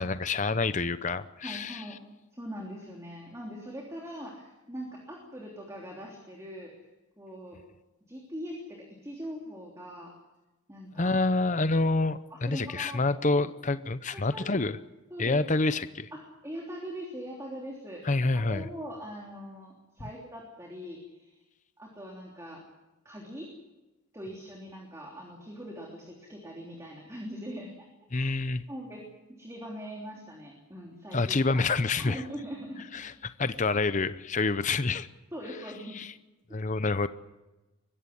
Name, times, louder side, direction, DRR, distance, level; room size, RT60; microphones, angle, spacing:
voice 1, 0.0-1.8 11.0-14.8 15.2-16.1 18.0-18.7 28.1-28.6 31.1-32.2 32.9-35.1 35.9-36.1 36.5-37.1, left 3 dB, 35° left, 13 dB, 0.7 m, -27 dB
voice 2, 1.4-2.0 2.3-6.7 7.2-7.6 8.1-10.1 10.7-11.2 12.3-13.0 14.1-14.6 15.1-15.4 16.1-18.0 18.3-21.4 21.8-22.6 23.0-23.5 24.1-27.9 28.1-28.4 28.7-29.0 29.3-31.6 32.0-33.0 35.3-36.0 36.5-36.6, equal, 15° right, -1 dB, 3.2 m, -42 dB
22.0 x 15.5 x 9.8 m, 1.1 s
head